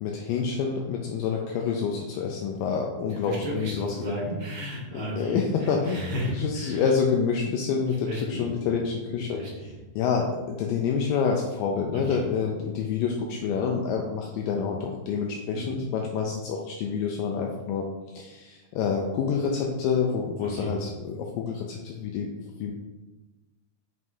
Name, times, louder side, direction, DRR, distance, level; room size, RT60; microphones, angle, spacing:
voice 1, 0.0-3.9 4.9-9.4 10.0-17.8 18.2-22.3 22.6-22.7, left 6 dB, 85° left, 1 dB, 2.0 m, -27 dB
voice 2, 3.1-6.8 8.0-8.5 9.2-9.7 12.1-12.2 15.5-15.8 20.4-20.7, equal, 40° right, -6 dB, 1.2 m, -34 dB
7.7 x 5.5 x 2.7 m, 1.1 s
omnidirectional pair, 4.4 m